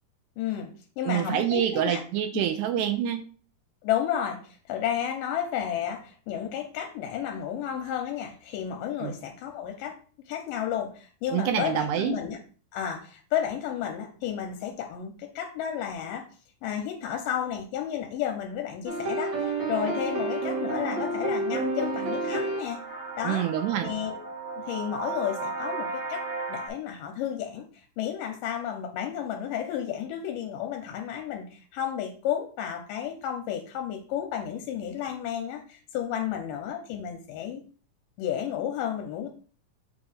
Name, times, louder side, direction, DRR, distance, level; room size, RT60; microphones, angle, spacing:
voice 1, 0.4-0.7 1.0-2.0 2.3-2.4 3.8-10.0 10.3-12.4 12.7-16.3 16.6-22.8 23.2-23.5 23.8-24.2 24.6-26.2 26.5-27.7 28.0-37.6 38.2-39.3, left 9 dB, 85° left, 4 dB, 2.2 m, -32 dB
voice 2, 1.1-3.3 9.0-9.1 11.3-12.2 23.2-23.9, right 10 dB, 80° right, 7 dB, 1.8 m, -26 dB
sound 1, 18.9-26.7, right 3 dB, 50° right, 1.5 m, -31 dB
7.0 x 2.7 x 5.0 m, 0.41 s
omnidirectional pair, 3.9 m